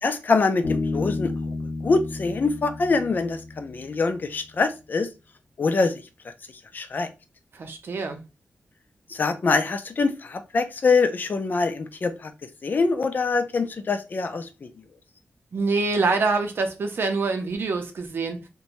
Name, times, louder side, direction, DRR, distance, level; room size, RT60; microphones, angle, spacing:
voice 1, 0.0-1.3 1.8-5.1 5.6-6.0 6.7-7.1 9.1-12.3 12.6-14.5, left 4 dB, 45° left, 0.4 m, -24 dB
Bass guitar, 0.6-4.1, left 3 dB, 85° left, 0.7 m, -31 dB
voice 2, 7.5-8.2 15.5-18.4, right 3 dB, 60° right, 0.5 m, -25 dB
2.5 x 2.2 x 2.9 m
wide cardioid pair, 110°, 4 cm